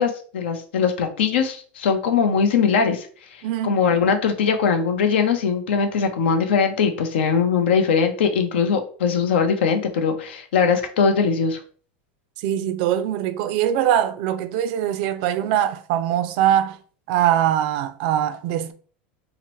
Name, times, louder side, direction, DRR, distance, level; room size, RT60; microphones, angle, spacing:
voice 1, 0.0-11.6, left 6 dB, 85° left, 0.5 m, -21 dB
voice 2, 3.4-3.8 12.4-16.8 17.1-18.7, right 11 dB, 65° right, 0.3 m, -22 dB
2.8 x 2.0 x 3.0 m
supercardioid pair, 120°, 6 cm